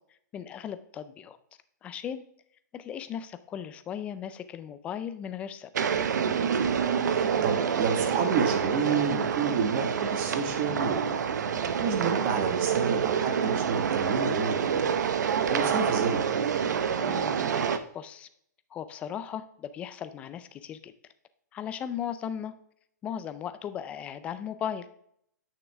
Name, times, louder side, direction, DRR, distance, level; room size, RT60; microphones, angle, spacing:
voice 1, 0.3-1.4 1.8-2.2 2.7-5.7 17.0-18.3 18.7-20.9 21.5-22.5 23.0-24.9, left 9 dB, 10° left, 12 dB, 0.4 m, -37 dB
sound 1, 5.7-17.8, right 7 dB, 70° right, 0.8 m, -27 dB
voice 2, 6.5-11.2 11.8-14.9 15.5-16.4, right 5 dB, 30° right, 5 dB, 1.5 m, -30 dB
8.7 x 6.5 x 3.4 m, 0.70 s
hypercardioid pair, 160°, 10 cm